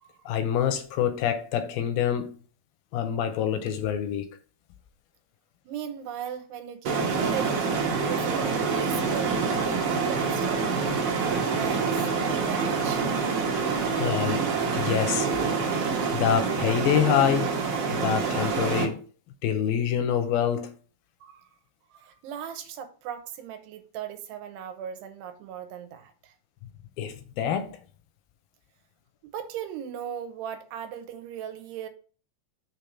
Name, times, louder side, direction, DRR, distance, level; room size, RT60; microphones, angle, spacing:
voice 1, 0.3-2.4 2.9-4.3 14.0-14.5 14.7-15.3 15.7-17.6 17.9-19.1 19.4-20.7 27.0-27.8, left 9 dB, 80° left, 2.3 m, -26 dB
voice 2, 5.7-10.9 11.5-13.0 21.2-21.4 21.9-26.3 29.2-31.9, right 9 dB, 85° right, 3.0 m, -38 dB
sound 1, 6.9-18.8, right 5 dB, 60° right, 2.3 m, -26 dB
6.8 x 3.6 x 5.8 m
omnidirectional pair, 4.7 m